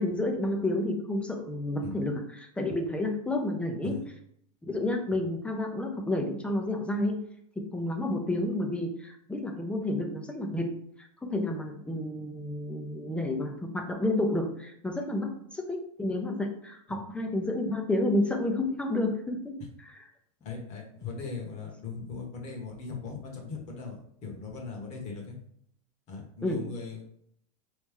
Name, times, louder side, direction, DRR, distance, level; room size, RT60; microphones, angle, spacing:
voice 1, 0.0-2.2 2.6-4.0 4.6-7.2 7.6-10.7 11.2-19.6 26.4-26.6, left 1 dB, 5° left, 3 dB, 0.5 m, -30 dB
voice 2, 20.4-25.3 26.1-27.0, left 4 dB, 35° left, 0 dB, 1.3 m, -39 dB
4.1 x 3.2 x 3.6 m, 0.68 s
supercardioid pair, 150°, 20 cm